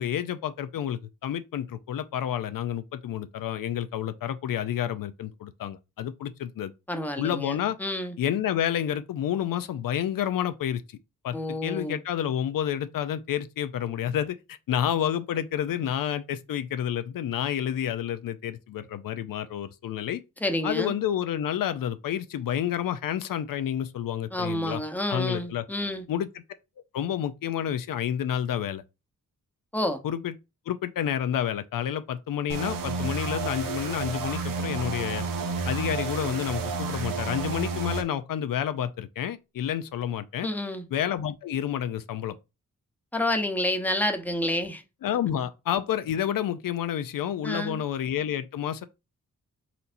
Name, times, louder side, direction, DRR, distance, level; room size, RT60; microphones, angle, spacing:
voice 1, 0.0-6.7 7.2-7.8 8.2-11.0 11.2-11.4 11.6-20.2 20.6-24.8 25.1-25.6 26.1-26.3 26.9-28.8 30.0-30.3 30.7-35.2 35.7-40.5 40.9-42.3 45.0-48.8, left 10 dB, 85° left, 0.5 m, -29 dB
voice 2, 6.9-8.1 11.3-12.0 20.4-20.9 24.3-26.1 29.7-30.0 40.4-40.8 43.1-44.8 47.4-47.8, left 1 dB, 5° left, 0.8 m, -29 dB
sound 1, 32.5-38.0, right 4 dB, 85° right, 0.9 m, -31 dB
4.3 x 4.1 x 2.5 m
wide cardioid pair, 100°, 33 cm